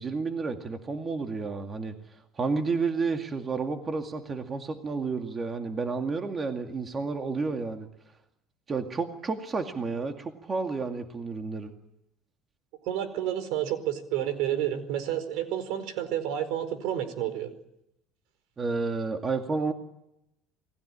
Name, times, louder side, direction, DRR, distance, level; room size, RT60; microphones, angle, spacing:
voice 1, 0.0-7.9 8.7-11.7 18.6-19.7, right 4 dB, 25° right, 5 dB, 2.2 m, -31 dB
voice 2, 12.8-17.5, right 11 dB, 70° right, 12 dB, 4.7 m, -30 dB
29.0 x 19.5 x 10.0 m, 0.85 s
cardioid pair, 140°, 0 cm